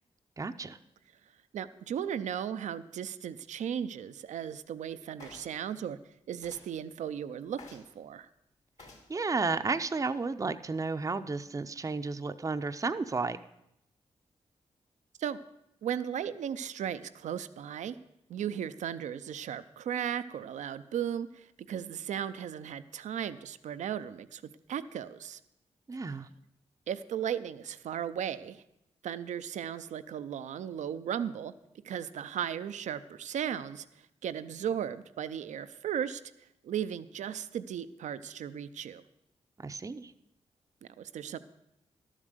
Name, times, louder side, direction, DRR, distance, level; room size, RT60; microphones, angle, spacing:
voice 1, 0.4-0.8 9.1-13.4 25.9-26.3 39.6-40.1, right 4 dB, 25° right, 9 dB, 0.5 m, -32 dB
voice 2, 1.5-6.0 6.3-8.3 15.2-15.4 15.8-18.0 18.3-24.4 24.7-25.4 26.9-28.6 29.0-31.5 31.8-33.9 34.2-36.2 36.6-39.0 40.8-41.4, right 9 dB, 80° right, 13 dB, 0.5 m, -36 dB
sound 1, 5.2-5.6 6.4-6.7 7.6-7.9 8.8-9.1 9.9-10.0, left 3 dB, 70° left, 2.7 m, -51 dB
12.0 x 7.3 x 6.6 m, 0.82 s
cardioid pair, 50°, 12 cm